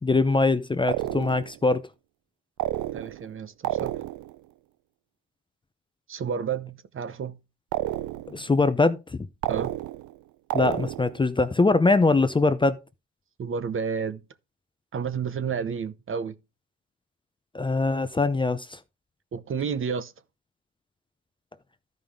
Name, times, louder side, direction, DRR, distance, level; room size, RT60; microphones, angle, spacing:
voice 1, 0.0-1.8 8.3-9.3 10.5-12.8 17.5-18.8, left 3 dB, 15° left, 0.6 m, -22 dB
sound 1, 0.9-1.6 2.6-3.3 3.6-4.4 7.7-8.4 9.4-10.2 10.5-11.2, right 15 dB, 80° right, 0.5 m, -30 dB
voice 2, 2.9-4.0 6.1-7.4 9.5-9.7 13.4-14.2 14.9-16.3 19.3-20.1, right 6 dB, 45° right, 0.8 m, -31 dB
12.5 x 5.3 x 3.6 m
cardioid pair, 90°, 30 cm